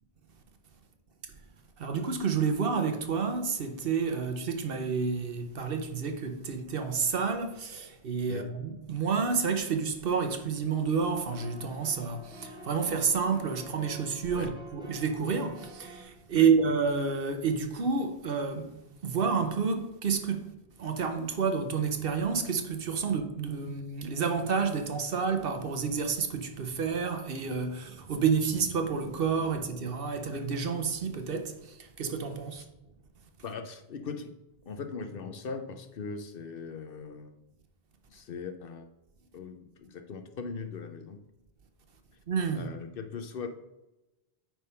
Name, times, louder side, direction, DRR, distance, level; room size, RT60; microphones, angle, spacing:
voice 1, 1.8-18.7 19.0-20.5 20.8-32.6 42.3-42.6, right 5 dB, 60° right, 1.0 m, -29 dB
sound 1, 11.0-16.0, right 2 dB, 5° right, 1.6 m, -47 dB
voice 2, 33.4-34.4 34.7-37.4 38.1-38.9 39.3-41.2 42.5-43.5, left 5 dB, 60° left, 0.9 m, -40 dB
8.9 x 3.4 x 5.6 m
omnidirectional pair, 1.1 m